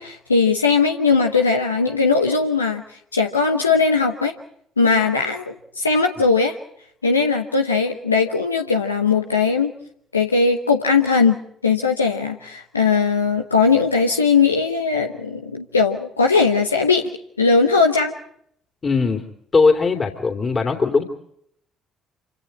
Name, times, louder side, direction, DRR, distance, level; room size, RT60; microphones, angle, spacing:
voice 1, 0.0-2.8 3.1-4.3 4.8-6.6 7.0-9.7 10.1-11.4 11.6-17.1 17.4-18.1, left 4 dB, 90° left, 3 dB, 0.9 m, -19 dB
voice 2, 18.8-19.2 19.5-21.0, left 4 dB, 35° left, 2 dB, 3.0 m, -19 dB
27.5 x 25.5 x 4.2 m, 0.70 s
figure-of-eight pair, 50°, 0 cm